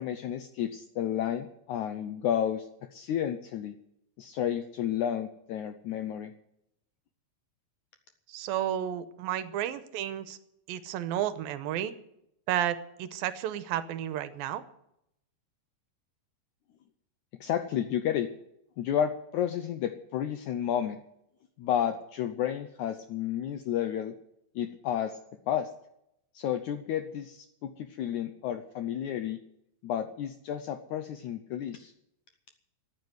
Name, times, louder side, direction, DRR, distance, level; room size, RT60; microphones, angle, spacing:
voice 1, 0.0-3.7 4.2-6.3 17.4-18.3 18.8-21.0 21.6-24.1 24.6-25.2 25.5-25.7 26.3-29.4 29.8-31.9, left 10 dB, 80° left, 8 dB, 1.7 m, -31 dB
voice 2, 8.3-10.4 10.7-11.9 12.5-14.6, right 11 dB, 80° right, 13 dB, 2.5 m, -32 dB
14.0 x 9.5 x 9.5 m, 0.79 s
omnidirectional pair, 4.3 m